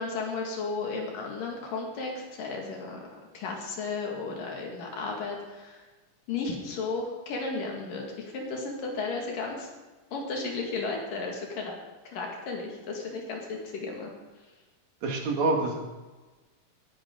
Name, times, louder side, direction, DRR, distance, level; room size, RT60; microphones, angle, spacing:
voice 1, 0.0-3.0 3.3-5.8 6.3-9.7 10.1-11.7 12.1-14.1, left 4 dB, 70° left, 0 dB, 3.7 m, -34 dB
voice 2, 15.0-15.8, right 3 dB, 60° right, 1 dB, 3.1 m, -26 dB
17.5 x 11.0 x 3.9 m, 1.2 s
omnidirectional pair, 3.9 m